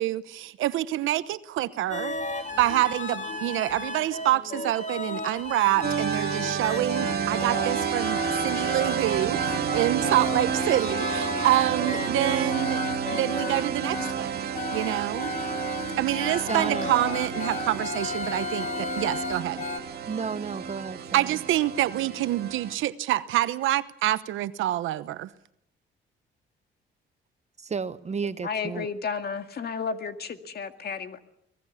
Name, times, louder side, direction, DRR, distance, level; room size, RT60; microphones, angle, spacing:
voice 1, 0.0-2.1 2.6-12.8 13.1-15.3 16.0-19.6 21.1-25.3, right 14 dB, 85° right, 1.0 m, -27 dB
sound 1, 1.9-14.1 14.5-19.8, left 3 dB, 35° left, 2.6 m, -34 dB
sound 2, 5.8-22.7, right 7 dB, 55° right, 1.7 m, -30 dB
voice 2, 16.5-16.9 20.1-21.4 27.6-28.9, right 5 dB, 35° right, 1.0 m, -32 dB
voice 3, 28.4-31.2, left 5 dB, 55° left, 2.2 m, -32 dB
24.5 x 19.5 x 7.2 m
cardioid pair, 90°, 20 cm